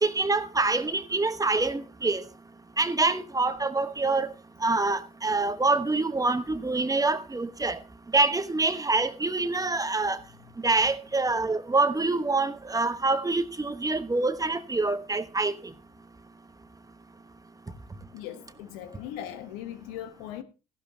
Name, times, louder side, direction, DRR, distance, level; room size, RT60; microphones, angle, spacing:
voice 1, 0.0-2.2 2.8-4.3 4.6-7.8 8.1-10.2 10.6-15.7, right 3 dB, 20° right, 1.1 m, -26 dB
voice 2, 18.1-20.4, left 11 dB, 85° left, 1.0 m, -39 dB
14.5 x 12.0 x 2.8 m
hypercardioid pair, 55°, 19 cm